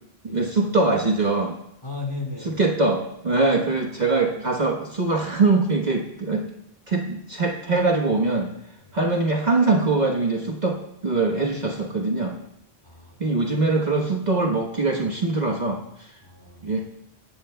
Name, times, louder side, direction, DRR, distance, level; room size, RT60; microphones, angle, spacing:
voice 1, 0.2-1.5 2.4-6.5 6.9-8.5 8.9-10.8 11.0-12.3 13.2-16.1 16.6-16.8, right 3 dB, 45° right, 1 dB, 1.3 m, -22 dB
voice 2, 1.8-2.6 8.9-9.0 12.8-13.4 16.2-16.7, left 3 dB, 25° left, -1 dB, 4.2 m, -36 dB
21.5 x 16.5 x 2.3 m, 0.76 s
omnidirectional pair, 1.1 m